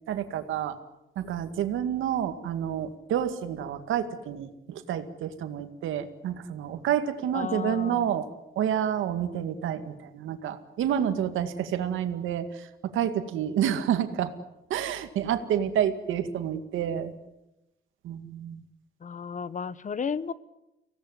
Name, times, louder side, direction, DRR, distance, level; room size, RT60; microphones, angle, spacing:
voice 1, 0.1-0.8 1.2-8.3 8.6-12.7 12.9-14.3 14.7-17.1 18.0-18.6, right 9 dB, 80° right, 9 dB, 2.1 m, -29 dB
voice 2, 7.3-8.1 19.0-20.3, left 6 dB, 40° left, 18 dB, 1.0 m, -33 dB
24.5 x 17.5 x 9.8 m, 0.94 s
cardioid pair, 90°, 20 cm